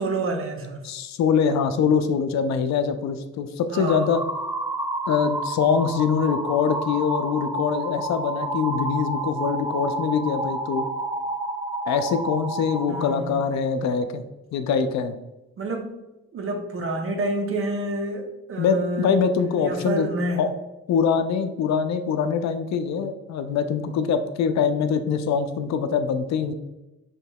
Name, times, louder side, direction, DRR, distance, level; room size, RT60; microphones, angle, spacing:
voice 1, 0.0-0.8 3.7-4.2 12.9-13.4 15.6-16.0 16.3-19.2 19.6-20.5, right 2 dB, 45° right, 4 dB, 0.7 m, -28 dB
voice 2, 0.8-4.2 5.1-10.9 11.9-14.2 14.5-15.2 18.6-20.1 20.4-20.5 20.9-26.5, left 6 dB, 65° left, 9 dB, 0.4 m, -23 dB
sound 1, 3.8-13.1, right 2 dB, 10° right, 0.4 m, -30 dB
5.2 x 3.0 x 2.2 m, 1.0 s
cardioid pair, 90°, 30 cm